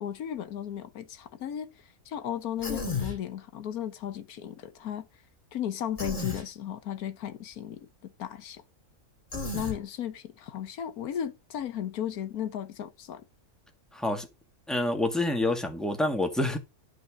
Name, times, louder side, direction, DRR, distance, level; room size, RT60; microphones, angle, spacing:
voice 1, 0.0-5.1 5.5-8.6 9.5-13.2, left 10 dB, 85° left, 1.4 m, -35 dB
Human voice, 2.6-3.2 6.0-6.5 9.3-9.8, left 3 dB, 35° left, 2.6 m, -33 dB
voice 2, 13.9-14.3 14.7-16.6, left 1 dB, ahead, 1.7 m, -27 dB
11.5 x 4.5 x 6.3 m
omnidirectional pair, 1.5 m